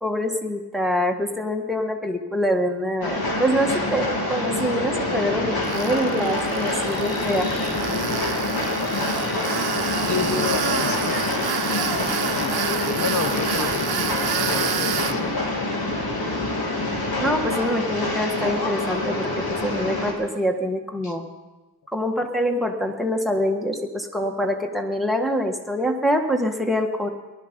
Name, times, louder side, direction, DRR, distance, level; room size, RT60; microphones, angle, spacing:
voice 1, 0.0-7.5 10.3-10.5 17.2-21.3 21.9-27.1, equal, ahead, 3 dB, 1.6 m, -25 dB
Train, 3.0-20.1, left 2 dB, 75° left, 2.8 m, -26 dB
Tools, 5.6-15.1, right 8 dB, 85° right, 0.7 m, -29 dB
voice 2, 10.0-11.5 12.1-15.7 21.0-21.2, left 5 dB, 50° left, 9 dB, 0.8 m, -31 dB
19.0 x 12.0 x 5.3 m, 1.2 s
wide cardioid pair, 115°, 37 cm